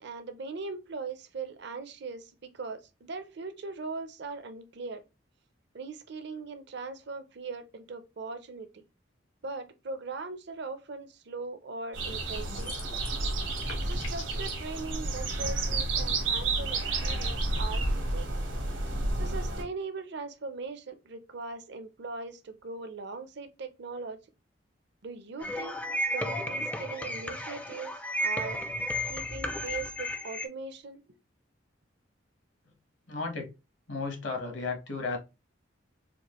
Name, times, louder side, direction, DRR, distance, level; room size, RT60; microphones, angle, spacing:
voice 1, 0.0-5.0 5.7-8.8 9.4-13.0 13.6-18.3 19.2-24.2 25.0-25.8 26.1-28.6 29.1-31.2, right 4 dB, 60° right, 0.6 m, -40 dB
sound 1, 11.9-19.6, right 2 dB, 80° right, 1.3 m, -31 dB
sound 2, 12.5-13.2 13.5-14.5, left 4 dB, 90° left, 1.3 m, -44 dB
sound 3, 25.4-30.5, equal, 10° left, 0.3 m, -33 dB
voice 2, 33.1-33.5 33.9-35.2, left 4 dB, 70° left, 1.2 m, -34 dB
4.4 x 2.4 x 3.0 m
head